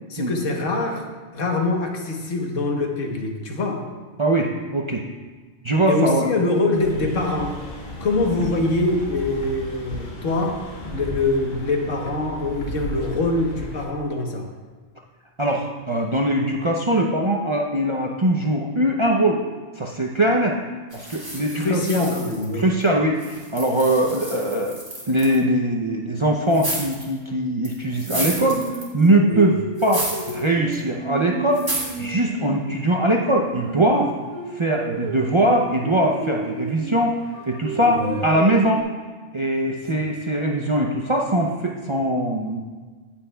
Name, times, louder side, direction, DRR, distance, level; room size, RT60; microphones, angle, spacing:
voice 1, 0.1-1.1 1.3-3.9 5.9-7.6 8.0-14.5 21.3-22.7 29.3-29.5 37.5-38.2 39.9-40.0, left 2 dB, 70° left, 2 dB, 1.4 m, -24 dB
voice 2, 4.2-5.0 5.6-6.3 15.4-19.4 19.8-20.6 20.9-22.1 22.5-24.8 25.1-28.7 28.9-29.5 29.8-31.7 32.0-34.1 34.5-37.2 37.5-38.8 39.3-42.6, right 1 dB, 45° right, 0 dB, 0.4 m, -21 dB
sound 1, 6.7-13.9, left 1 dB, 40° left, 1.2 m, -35 dB
sound 2, 20.9-22.8 23.2-25.4 26.5-27.1 27.6-29.1 29.8-30.4 30.7-30.8 31.5-32.0, right 1 dB, 15° right, 1.8 m, -31 dB
Singing, 28.1-32.7 33.1-37.1 37.6-38.8, right 4 dB, 75° right, 1.5 m, -32 dB
17.0 x 5.8 x 2.2 m, 1.4 s
omnidirectional pair, 1.4 m